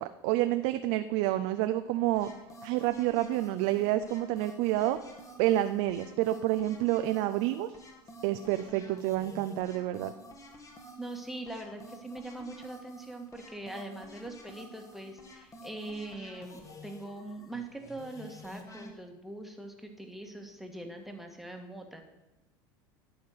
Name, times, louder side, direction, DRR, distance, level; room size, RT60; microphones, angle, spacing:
voice 1, 0.0-2.3 2.6-5.0 5.4-7.8 8.2-10.1, right 14 dB, 65° right, 10 dB, 0.5 m, -29 dB
Mr.Champion, 2.2-18.9, equal, 30° left, 1.7 m, -50 dB
voice 2, 11.0-22.0, right 2 dB, ahead, 3 dB, 1.5 m, -42 dB
11.5 x 4.4 x 6.4 m, 0.98 s
hypercardioid pair, 90°, 12 cm